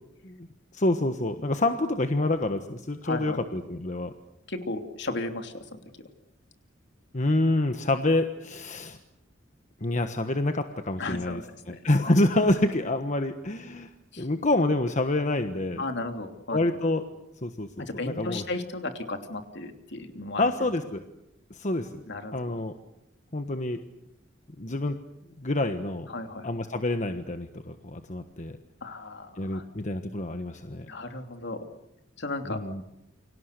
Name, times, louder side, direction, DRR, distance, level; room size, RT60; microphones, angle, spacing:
voice 1, 0.7-4.1 7.1-9.0 9.8-11.4 11.7-13.9 14.2-15.8 16.5-17.0 17.4-18.4 20.4-21.0 21.5-22.0 22.3-22.7 23.3-23.8 24.6-25.0 25.4-26.1 26.4-28.6 29.4-30.9 32.5-32.8, left 2 dB, 40° left, 7 dB, 1.3 m, -27 dB
voice 2, 3.0-3.4 4.5-6.1 11.0-11.8 14.1-14.3 15.8-16.6 17.8-20.5 22.1-22.6 26.1-26.5 28.8-29.6 30.9-31.6 32.2-32.7, left 2 dB, 60° left, 6 dB, 3.0 m, -35 dB
29.0 x 25.0 x 6.8 m, 0.87 s
head